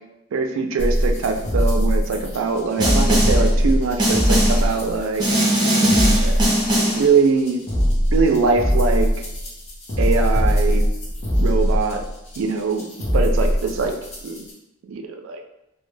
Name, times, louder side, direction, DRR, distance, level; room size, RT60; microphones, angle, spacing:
voice 1, 0.3-5.2 6.2-7.6 8.1-9.2 10.0-10.9 11.4-12.0 12.4-12.8 13.1-13.9 14.2-14.4 14.9-15.4, right 4 dB, 90° right, 4 dB, 0.3 m, -22 dB
sound 1, 0.8-14.5, equal, 35° left, 0.5 m, -21 dB
Snare drum, 2.8-3.5 4.0-4.7 5.2-7.1, equal, 20° right, 0.5 m, -19 dB
2.1 x 2.1 x 3.1 m, 0.87 s
head